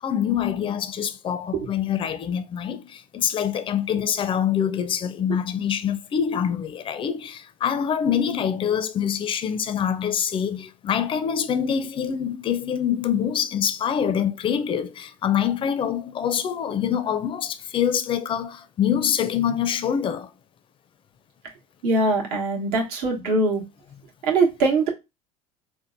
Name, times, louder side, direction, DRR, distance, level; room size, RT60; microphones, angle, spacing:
voice 1, 0.0-20.3 23.1-23.3, left 8 dB, 30° left, 0.4 m, -25 dB
voice 2, 21.8-23.6 24.3-24.9, right 3 dB, 60° right, 1.0 m, -22 dB
4.3 x 2.1 x 2.5 m
hypercardioid pair, 75°, 19 cm